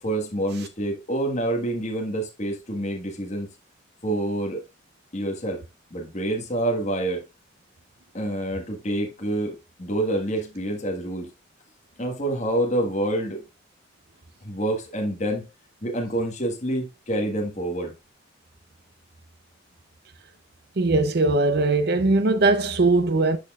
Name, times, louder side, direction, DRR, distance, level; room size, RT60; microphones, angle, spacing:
voice 1, 0.0-3.5 4.0-4.6 5.1-5.6 5.9-7.2 8.1-11.3 12.0-13.4 14.4-15.5 15.8-17.9, right 1 dB, 35° left, 1.5 m, -27 dB
voice 2, 20.8-23.4, right 2 dB, 55° right, 0.6 m, -20 dB
12.0 x 4.3 x 2.4 m
head